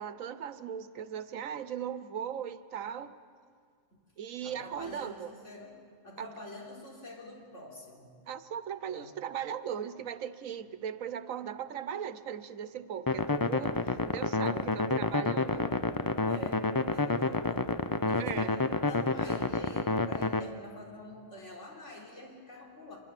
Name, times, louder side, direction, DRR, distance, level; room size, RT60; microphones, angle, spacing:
voice 1, 0.0-3.1 4.2-5.3 6.2-6.3 8.3-15.6 18.2-18.5, right 8 dB, 90° right, 13 dB, 1.3 m, -38 dB
voice 2, 4.4-8.1 8.9-9.2 14.5-14.7 16.2-17.7 18.1-23.0, left 2 dB, 65° left, -2 dB, 4.3 m, -47 dB
sound 1, 13.1-20.4, left 3 dB, 30° left, 0.4 m, -29 dB
25.0 x 22.0 x 7.5 m, 2.1 s
omnidirectional pair, 1.3 m